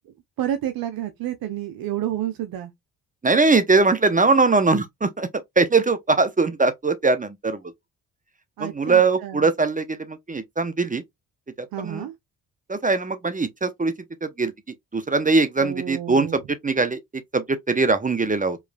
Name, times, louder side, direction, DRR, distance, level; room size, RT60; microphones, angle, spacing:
voice 1, 0.4-2.7 8.6-9.5 11.7-12.1 15.6-16.4, right 11 dB, 60° right, 0.7 m, -30 dB
voice 2, 3.2-5.3 5.6-7.6 8.6-11.0 11.6-12.1 12.7-13.9 14.2-14.5 14.9-17.0 17.3-18.6, right 3 dB, 20° right, 0.7 m, -21 dB
4.6 x 3.1 x 2.2 m
hypercardioid pair, 50°, 40 cm